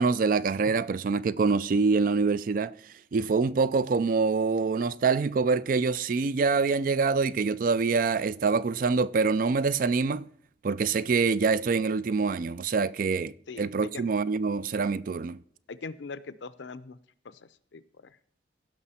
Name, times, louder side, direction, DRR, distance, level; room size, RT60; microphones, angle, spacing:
voice 1, 0.0-2.7 3.1-10.2 10.6-15.4, right 4 dB, 45° right, 0.3 m, -25 dB
voice 2, 13.5-14.0 15.7-17.0 17.4-18.2, left 4 dB, 75° left, 0.6 m, -41 dB
16.5 x 6.0 x 4.2 m
head